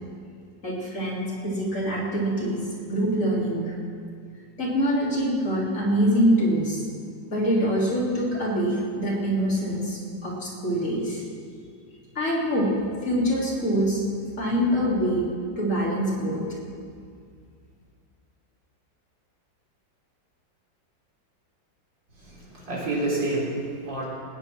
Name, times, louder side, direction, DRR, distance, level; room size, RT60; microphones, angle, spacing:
voice 1, 0.6-3.7 4.6-6.8 7.3-11.2 12.2-12.7 13.0-14.0 14.4-15.2 15.6-16.4, equal, 40° left, -5 dB, 3.6 m, -24 dB
voice 2, 22.2-24.0, right 2 dB, 75° right, -5 dB, 4.2 m, -28 dB
19.0 x 8.8 x 6.1 m, 2.2 s
omnidirectional pair, 2.0 m